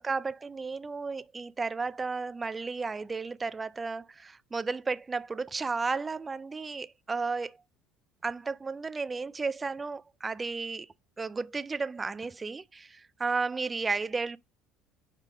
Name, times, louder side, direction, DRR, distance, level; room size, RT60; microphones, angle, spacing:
voice 1, 0.0-7.6 8.2-10.9 11.2-14.4, right 4 dB, 25° right, 0.3 m, -33 dB
5.1 x 3.6 x 5.0 m
supercardioid pair, 90°, 0 cm